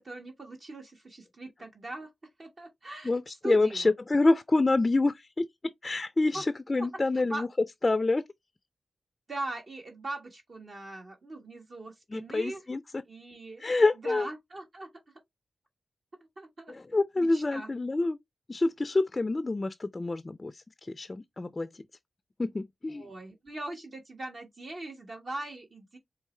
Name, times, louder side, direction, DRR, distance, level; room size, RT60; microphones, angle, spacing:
voice 1, 0.0-2.1 2.4-3.1 3.4-3.9 6.3-6.4 7.3-7.5 9.3-12.6 13.1-13.6 14.0-14.9 16.4-16.7 17.2-17.7 22.9-26.0, right 2 dB, 50° right, 1.4 m, -40 dB
voice 2, 3.0-7.5 7.8-8.3 12.1-13.0 13.6-14.3 16.7-18.2 18.5-21.7 22.4-23.1, left 2 dB, 30° left, 0.4 m, -27 dB
4.6 x 2.9 x 3.1 m
cardioid pair, 60°, 0 cm